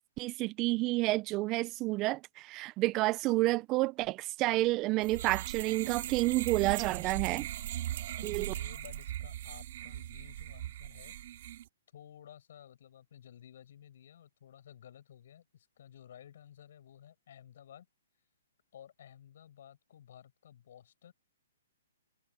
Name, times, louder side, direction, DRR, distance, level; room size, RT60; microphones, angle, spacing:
voice 1, 0.2-7.5 8.2-8.5, right 19 dB, 20° right, 0.3 m, -30 dB
sound 1, 5.0-11.7, right 13 dB, 45° right, 3.7 m, -39 dB
voice 2, 8.2-11.2 11.9-17.9 18.7-21.1, left 10 dB, 50° left, 7.7 m, -54 dB
hypercardioid pair, 165°, 0 cm